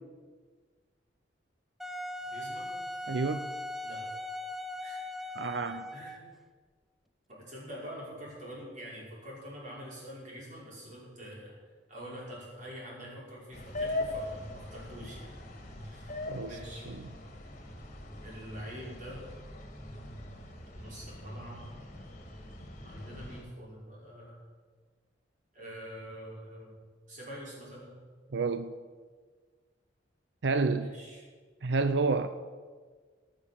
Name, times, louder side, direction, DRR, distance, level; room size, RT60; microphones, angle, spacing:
Wind instrument woodwind instrument, 1.8-6.3, left 1 dB, ahead, 0.7 m, -39 dB
voice 1, 2.3-2.7 3.8-4.0 4.8-5.3 5.9-6.3 7.3-11.6 11.9-15.3 15.8-16.2 16.4-16.9 18.2-19.2 20.8-21.7 22.8-24.4 25.5-26.7 27.1-28.0 30.8-31.2, equal, 45° right, -5 dB, 5.5 m, -45 dB
voice 2, 3.1-3.5 5.4-5.8 16.3-16.5 28.3-28.7 30.4-30.9 31.6-32.3, right 4 dB, 70° right, 11 dB, 0.6 m, -29 dB
sound 1, 13.5-23.4, left 2 dB, 40° left, 2.2 m, -41 dB
18.5 x 6.7 x 7.2 m, 1.5 s
head